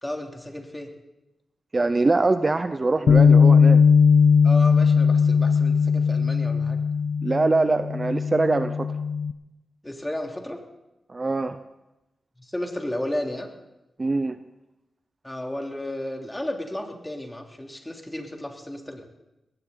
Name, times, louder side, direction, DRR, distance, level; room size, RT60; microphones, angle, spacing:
voice 1, 0.0-0.9 4.4-6.8 9.8-10.6 12.4-13.5 15.2-19.0, left 1 dB, 15° left, 2 dB, 3.3 m, -33 dB
voice 2, 1.7-3.8 7.2-8.9 11.1-11.6 14.0-14.4, right 3 dB, 40° right, 10 dB, 0.8 m, -23 dB
Bass guitar, 3.1-9.3, left 6 dB, 80° left, 0.5 m, -18 dB
20.5 x 17.0 x 4.1 m, 0.95 s
cardioid pair, 55°, 0 cm